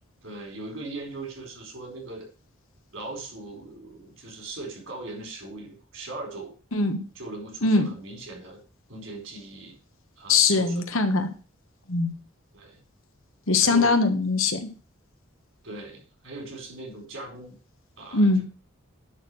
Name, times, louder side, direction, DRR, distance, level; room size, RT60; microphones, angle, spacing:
voice 1, 0.2-2.3 2.9-6.5 7.1-8.6 8.9-9.7 10.2-10.9 12.5-12.8 13.6-14.0 15.6-17.6 18.0-18.4, right 2 dB, 70° right, 1 dB, 4.3 m, -39 dB
voice 2, 10.3-11.3 11.9-12.1 13.5-14.7 18.1-18.4, left 3 dB, 75° left, 7 dB, 1.3 m, -21 dB
10.5 x 4.5 x 6.3 m, 0.37 s
head